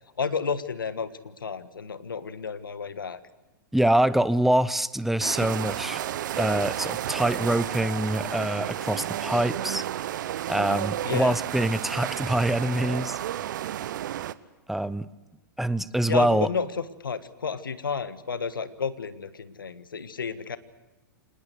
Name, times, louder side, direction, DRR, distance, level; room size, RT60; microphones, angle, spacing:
voice 1, 0.2-3.2 11.0-11.3 16.1-20.6, left 6 dB, 85° left, 13 dB, 1.4 m, -31 dB
voice 2, 3.7-6.0 6.4-9.8 10.5-13.2 14.7-15.1 15.6-16.5, right 1 dB, ahead, 17 dB, 0.7 m, -25 dB
sound 1, 5.2-14.3, right 12 dB, 65° right, 0.9 m, -32 dB
26.5 x 20.0 x 8.0 m, 1.0 s
hypercardioid pair, 105°, 11 cm